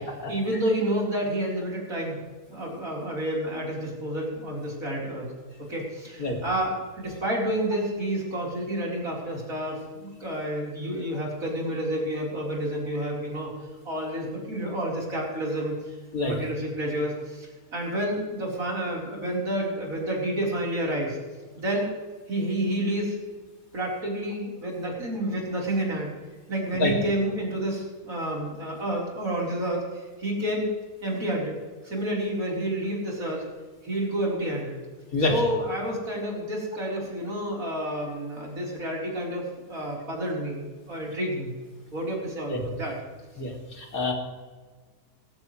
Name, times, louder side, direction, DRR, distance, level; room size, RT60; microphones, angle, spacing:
voice 1, 0.3-2.2 2.5-5.3 5.7-13.5 13.8-16.0 16.2-21.2 21.5-21.9 22.3-23.2 23.7-26.1 26.5-30.7 31.0-31.6 31.8-33.4 33.8-34.8 35.2-41.5 41.9-43.0, right 1 dB, 55° right, -3 dB, 4.5 m, -29 dB
voice 2, 43.8-44.1, left 3 dB, 60° left, 1 dB, 2.9 m, -25 dB
19.5 x 15.0 x 3.2 m, 1.4 s
omnidirectional pair, 1.7 m